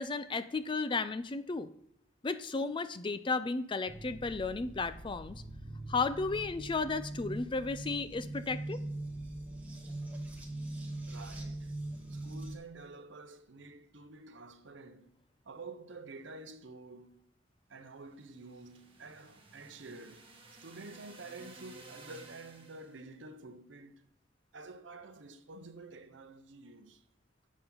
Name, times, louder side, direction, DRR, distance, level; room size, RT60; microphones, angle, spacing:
voice 1, 0.0-1.7 2.2-5.4 5.9-8.8, left 3 dB, 25° left, 0.4 m, -34 dB
sound 1, 3.9-12.6, right 1 dB, 10° right, 1.5 m, -42 dB
voice 2, 11.1-11.7 12.1-15.1 15.5-17.2 17.7-20.3 20.6-24.0 24.5-27.0, right 3 dB, 75° right, 0.8 m, -49 dB
sound 2, 18.1-23.1, right 2 dB, 30° right, 1.6 m, -55 dB
10.0 x 7.3 x 3.9 m
head